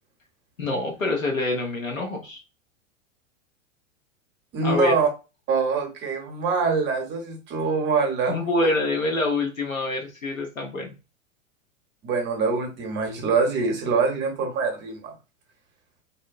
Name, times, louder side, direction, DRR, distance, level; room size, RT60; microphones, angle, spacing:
voice 1, 0.6-2.4 4.6-4.9 8.3-10.9, left 2 dB, 85° left, 0 dB, 1.0 m, -26 dB
voice 2, 4.5-5.1 5.5-8.7 12.0-15.1, right 4 dB, 25° right, 2 dB, 0.8 m, -24 dB
2.7 x 2.2 x 2.5 m, 0.29 s
figure-of-eight pair, 100°, 39 cm